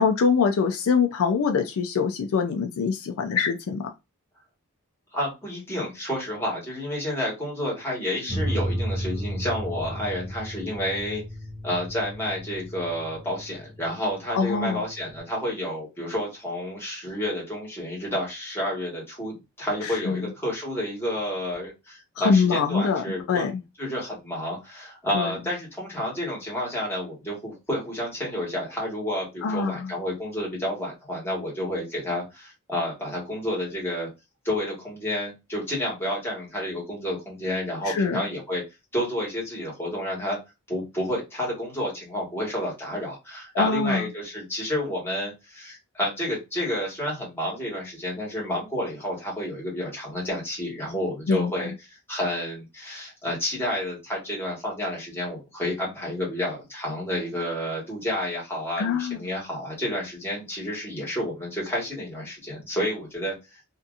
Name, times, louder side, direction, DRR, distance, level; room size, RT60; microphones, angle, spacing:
voice 1, 0.0-3.9 14.3-14.8 19.8-20.2 22.2-23.6 25.1-25.3 29.4-29.9 37.8-38.2 43.5-44.0 51.3-51.5 58.8-59.2, left 5 dB, 65° left, 0.4 m, -24 dB
voice 2, 5.1-11.2 11.6-23.5 23.8-34.1 34.4-38.6 38.9-40.4 40.7-63.3, left 1 dB, 10° left, 1.4 m, -30 dB
sound 1, 8.3-15.2, equal, 10° right, 1.1 m, -34 dB
2.7 x 2.5 x 2.3 m
head